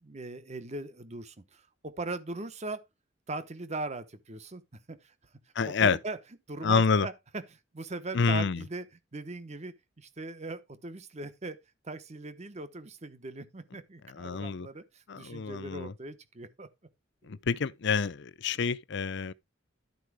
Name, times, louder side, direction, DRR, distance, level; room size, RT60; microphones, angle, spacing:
voice 1, 0.0-2.8 3.3-4.6 4.9-5.1 5.6-6.2 6.5-8.9 9.1-11.6 11.8-16.7 17.2-17.4, right 2 dB, 35° right, 1.0 m, -40 dB
voice 2, 5.6-6.0 6.6-7.1 8.1-8.6 14.2-14.7 15.1-15.9 17.3-19.3, left 5 dB, 60° left, 0.6 m, -27 dB
12.0 x 4.5 x 4.7 m
head